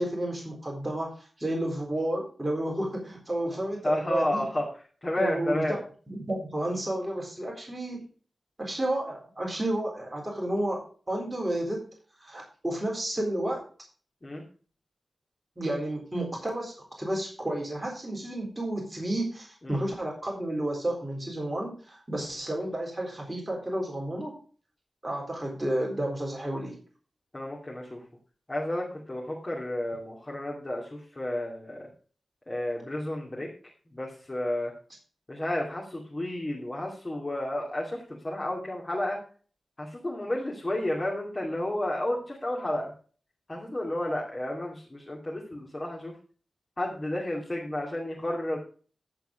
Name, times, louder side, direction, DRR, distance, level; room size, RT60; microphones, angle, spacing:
voice 1, 0.0-4.5 5.2-5.8 6.1-8.0 8.6-11.9 12.2-13.6 15.6-24.3 25.0-26.8, right 1 dB, 20° right, -1 dB, 3.8 m, -31 dB
voice 2, 3.8-4.7 5.0-5.8 14.2-14.4 19.6-19.8 27.3-28.0 28.5-31.9 32.5-33.5 33.9-34.7 35.3-39.2 39.8-42.9 43.5-46.2 46.8-48.6, left 1 dB, 35° left, -3 dB, 2.5 m, -31 dB
13.5 x 4.7 x 5.0 m, 0.41 s
cardioid pair, 45°, 0 cm